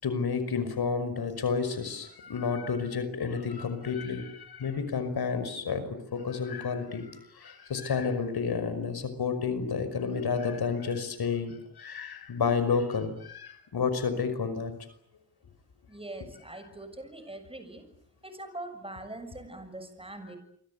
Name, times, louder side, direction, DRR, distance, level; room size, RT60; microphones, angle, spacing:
voice 1, 0.0-5.8 6.1-14.7, left 5 dB, 70° left, 11 dB, 5.6 m, -30 dB
voice 2, 15.9-17.8 18.2-20.4, right 2 dB, 15° right, 9 dB, 7.0 m, -42 dB
29.5 x 24.5 x 8.3 m, 0.67 s
wide cardioid pair, 120°, 40 cm